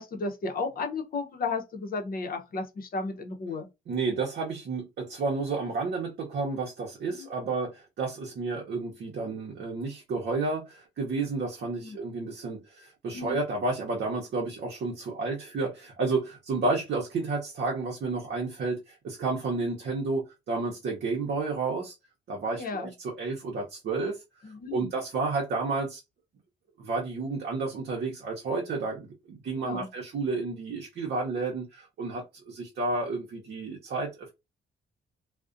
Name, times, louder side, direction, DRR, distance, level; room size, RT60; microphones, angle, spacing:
voice 1, 0.0-3.7 7.1-7.3 11.7-12.0 13.1-13.4 22.5-22.9 24.4-24.9 29.6-29.9, left 3 dB, 45° left, 0.6 m, -34 dB
voice 2, 3.9-21.9 22.3-24.2 24.7-26.0 26.8-34.3, right 3 dB, 60° right, 0.7 m, -31 dB
2.4 x 2.1 x 2.4 m
cardioid pair, 90°, 20 cm